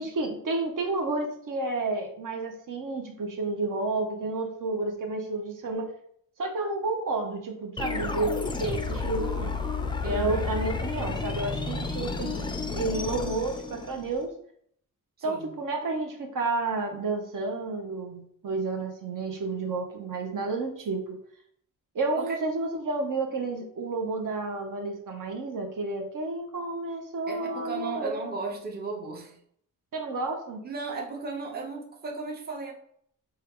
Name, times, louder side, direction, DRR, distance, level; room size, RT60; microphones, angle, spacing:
voice 1, 0.0-5.9 6.4-9.6 10.0-12.4 12.7-14.3 15.2-21.2 21.9-28.3 29.9-30.6, right 3 dB, 65° right, 3 dB, 0.7 m, -31 dB
sound 1, 7.8-14.2, left 4 dB, 15° left, 0.3 m, -31 dB
voice 2, 10.0-10.6 15.2-15.5 22.2-22.4 27.3-29.4 30.6-32.7, right 3 dB, 30° right, 1 dB, 0.7 m, -36 dB
4.4 x 2.3 x 3.5 m, 0.66 s
wide cardioid pair, 140°, 34 cm